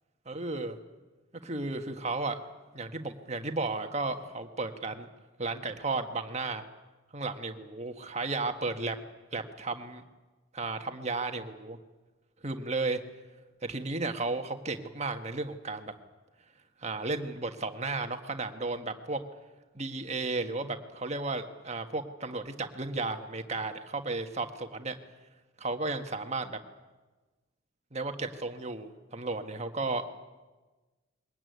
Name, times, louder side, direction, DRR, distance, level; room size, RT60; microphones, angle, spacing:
voice 1, 0.3-0.7 1.4-5.1 5.4-6.6 7.1-9.0 9.3-10.0 10.5-11.8 12.4-13.0 13.6-15.9 16.8-19.2 19.7-24.9 25.6-26.6 27.9-30.0, right 3 dB, 35° right, 6 dB, 1.5 m, -34 dB
22.5 x 19.5 x 9.5 m, 1.2 s
head